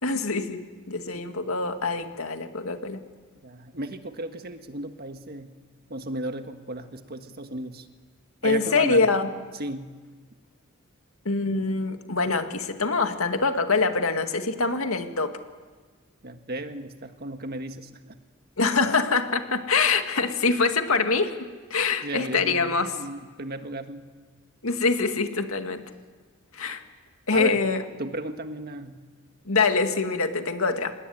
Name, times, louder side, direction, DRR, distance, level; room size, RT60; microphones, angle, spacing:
voice 1, 0.0-3.0 8.4-9.3 11.3-15.4 18.6-21.4 21.7-22.9 24.6-25.8 26.5-26.8 27.3-27.8 29.5-30.9, left 4 dB, 80° left, 6 dB, 2.1 m, -24 dB
voice 2, 3.4-5.5 5.9-7.9 8.4-9.0 9.5-9.9 16.2-18.2 22.0-22.7 22.9-24.1 27.3-27.6 28.0-29.0, right 1 dB, 50° right, 7 dB, 1.7 m, -35 dB
26.5 x 21.0 x 9.4 m, 1.4 s
head